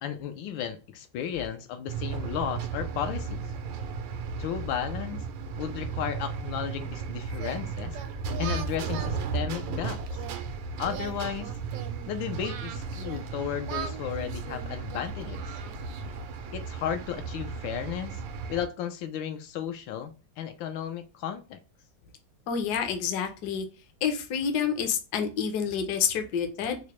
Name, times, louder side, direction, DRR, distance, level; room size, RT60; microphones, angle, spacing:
voice 1, 0.0-3.5 4.4-5.2 5.6-8.0 8.4-10.2 10.8-11.5 12.1-15.6 16.5-18.2 18.5-21.6, left 9 dB, 85° left, 1.3 m, -34 dB
sound 1, 1.9-18.7, right 5 dB, 90° right, 1.3 m, -35 dB
Singing, 7.3-10.4 10.8-13.3 13.7-16.3, right 8 dB, 70° right, 1.0 m, -41 dB
voice 2, 22.5-23.7 24.0-26.8, left 7 dB, 70° left, 1.2 m, -28 dB
4.7 x 2.1 x 2.9 m
omnidirectional pair, 2.0 m